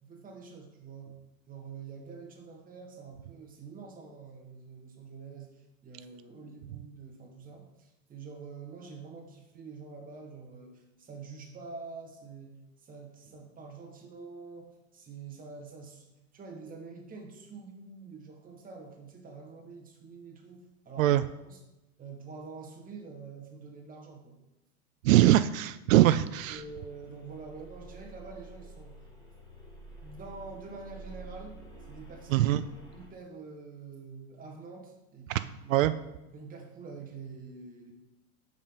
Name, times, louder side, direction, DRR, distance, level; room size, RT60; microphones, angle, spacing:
voice 1, 0.0-1.2 1.5-21.2 21.5-21.6 22.0-24.3 26.5-29.0 30.0-32.5 32.9-35.9 36.3-37.9, right 4 dB, 20° right, 0 dB, 1.5 m, -46 dB
voice 2, 25.0-26.6 32.3-32.6 35.3-35.4 35.7-35.9, right 14 dB, 65° right, 13 dB, 0.5 m, -22 dB
sound 1, 26.2-33.1, right 2 dB, 10° left, 1.8 m, -49 dB
5.4 x 5.3 x 5.3 m, 0.97 s
hypercardioid pair, 115°, 43 cm